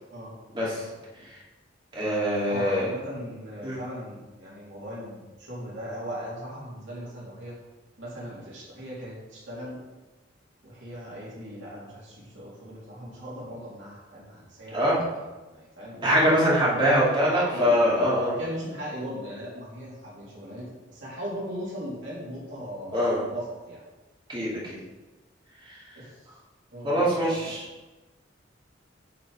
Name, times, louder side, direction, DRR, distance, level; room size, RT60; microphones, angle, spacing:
voice 1, 0.5-0.9 1.9-2.9 3.6-3.8 14.7-15.0 16.0-18.4 22.9-23.2 24.3-24.8 25.6-25.8 26.8-27.7, equal, 25° right, -7 dB, 2.5 m, -23 dB
voice 2, 2.4-7.5 8.0-9.8 10.6-15.0 15.5-16.1 17.3-17.7 18.1-23.8 26.0-26.1 26.7-27.5, equal, 75° right, -7 dB, 2.7 m, -38 dB
8.5 x 4.3 x 4.7 m, 1.2 s
head